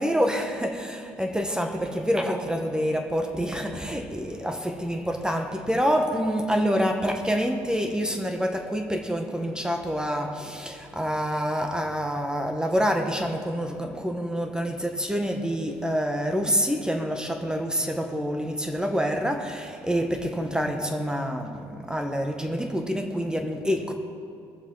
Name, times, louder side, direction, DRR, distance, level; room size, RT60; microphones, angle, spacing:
voice 1, 0.0-23.9, equal, 5° right, 1.4 m, -27 dB
21.0 x 7.1 x 4.1 m
cardioid pair, 80°, 10 cm